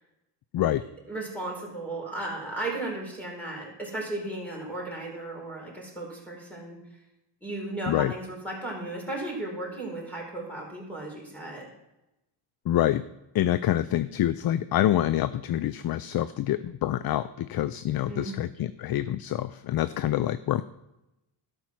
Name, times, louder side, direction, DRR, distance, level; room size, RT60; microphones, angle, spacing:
voice 1, 0.6-6.8 7.4-11.7 18.1-18.4, right 2 dB, 5° left, -2 dB, 4.6 m, -35 dB
voice 2, 12.7-13.1 13.3-20.6, left 13 dB, 50° left, 15 dB, 0.4 m, -26 dB
13.0 x 5.2 x 6.1 m, 0.93 s
cardioid pair, 90°, 48 cm